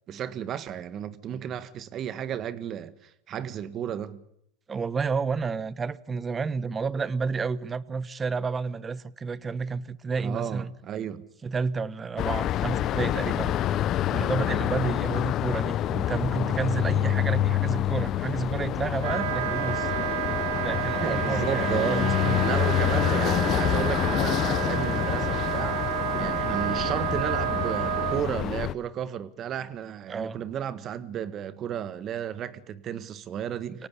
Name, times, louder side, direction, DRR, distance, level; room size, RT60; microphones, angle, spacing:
voice 1, 0.1-4.2 10.2-11.3 21.0-22.1 22.4-25.8 26.2-33.9, right 9 dB, 40° right, 1.7 m, -33 dB
voice 2, 4.7-10.7 11.4-19.9 20.6-22.5 30.1-30.4 33.7-33.9, right 5 dB, 20° right, 1.0 m, -31 dB
sound 1, 12.2-28.7, left 12 dB, 40° left, 0.8 m, -27 dB
Wind instrument woodwind instrument, 19.0-28.2, right 16 dB, 80° right, 1.4 m, -30 dB
24.5 x 18.0 x 8.5 m
supercardioid pair, 115°, 0 cm